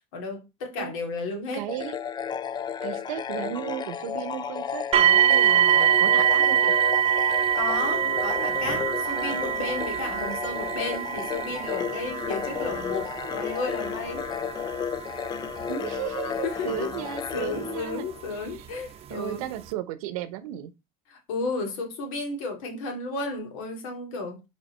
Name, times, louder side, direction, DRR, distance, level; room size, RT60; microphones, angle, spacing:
voice 1, 0.1-1.7 7.5-14.2 16.4-16.9 17.3-19.4 21.1-24.4, left 3 dB, 85° left, 2.4 m, -33 dB
voice 2, 1.5-2.0 2.8-6.7 15.7-18.1 19.1-20.7, right 12 dB, 90° right, 0.9 m, -34 dB
sound 1, 1.7-18.4, left 7 dB, 25° left, 0.4 m, -33 dB
sound 2, 4.9-17.8 18.6-18.7 19.3-19.4, right 9 dB, 35° right, 0.7 m, -25 dB
5.3 x 4.2 x 4.3 m
supercardioid pair, 125°, 18 cm